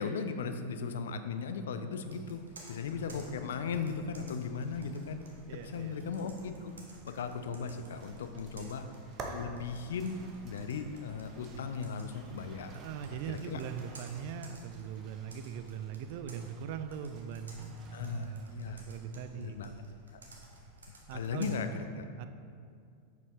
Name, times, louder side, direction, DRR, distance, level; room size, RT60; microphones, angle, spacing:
voice 1, 0.0-5.2 5.5-6.7 7.0-8.9 9.2-12.8 13.1-13.6 17.9-18.8 19.3-19.7 20.1-20.2 21.1-22.0, left 5 dB, 60° left, 8 dB, 0.5 m, -37 dB
Computer keyboard, 2.0-21.5, right 1 dB, 70° right, 1.2 m, -55 dB
sound 1, 4.0-18.9, right 3 dB, 30° right, 0.9 m, -52 dB
voice 2, 5.5-5.9 8.5-8.7 12.7-19.8 21.1-21.6 22.2-22.3, right 8 dB, 50° right, 9 dB, 0.4 m, -41 dB
8.2 x 6.8 x 3.2 m, 2.3 s
figure-of-eight pair, 90°, 0 cm